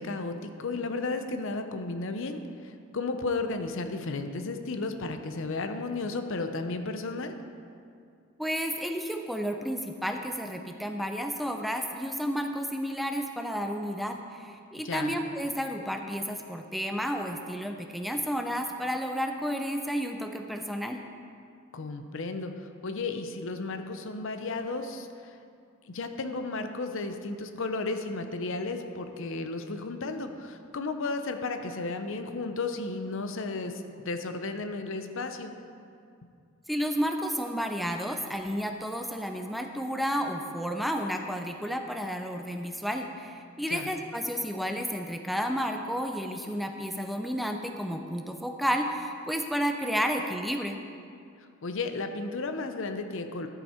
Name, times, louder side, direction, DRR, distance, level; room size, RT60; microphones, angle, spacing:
voice 1, 0.0-2.4 2.9-7.3 14.8-15.2 21.7-22.5 22.8-25.1 25.9-35.5 43.7-43.9 51.6-53.5, left 3 dB, 65° left, 7 dB, 0.7 m, -33 dB
voice 2, 8.4-21.0 36.7-50.8, equal, ahead, 4 dB, 0.4 m, -31 dB
12.0 x 7.1 x 4.4 m, 2.4 s
head